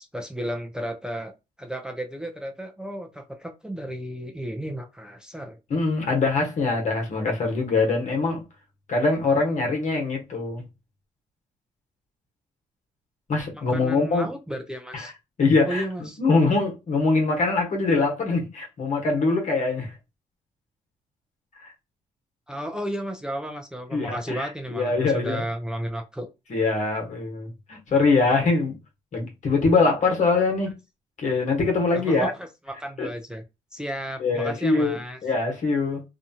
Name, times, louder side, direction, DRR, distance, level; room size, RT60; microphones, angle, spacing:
voice 1, 0.0-1.3 1.6-5.6 13.5-15.1 15.7-16.2 22.5-26.3 31.9-33.4 33.7-35.2, equal, 5° right, 0.6 m, -33 dB
voice 2, 5.7-8.4 8.9-10.6 13.3-14.3 14.9-15.1 15.4-15.8 16.2-19.9 21.6-21.7 23.9-25.4 26.5-28.8 29.1-30.7 31.2-32.3 33.0-33.1 34.2-36.0, left 3 dB, 60° left, 1.2 m, -23 dB
2.8 x 2.2 x 2.7 m
cardioid pair, 65°, 14 cm